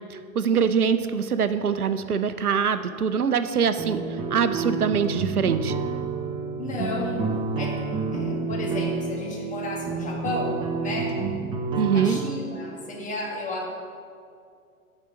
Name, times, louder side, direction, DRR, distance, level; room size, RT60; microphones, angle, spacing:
voice 1, 0.1-5.7 11.8-12.2, right 6 dB, 90° right, 12 dB, 0.6 m, -24 dB
sound 1, 3.8-12.2, right 4 dB, 10° right, 0.5 m, -29 dB
voice 2, 6.6-7.2 7.6-7.8 8.1-11.2 11.9-13.7, left 2 dB, 15° left, -2 dB, 1.7 m, -32 dB
9.4 x 4.9 x 6.6 m, 2.3 s
figure-of-eight pair, 105°, 43 cm